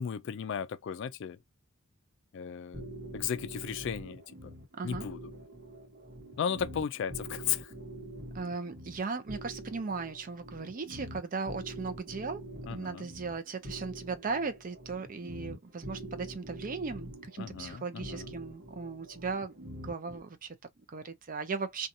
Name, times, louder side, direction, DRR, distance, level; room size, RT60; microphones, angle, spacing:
voice 1, 0.0-1.4 2.3-2.9 3.1-4.5 4.8-5.3 6.4-7.7 12.7-13.1 17.4-18.3, left 8 dB, 60° left, 0.3 m, -35 dB
sound 1, 2.7-20.2, right 1 dB, 55° right, 1.0 m, -45 dB
voice 2, 8.3-12.4 12.7-21.9, right 4 dB, 40° right, 0.5 m, -37 dB
2.6 x 2.3 x 2.6 m
head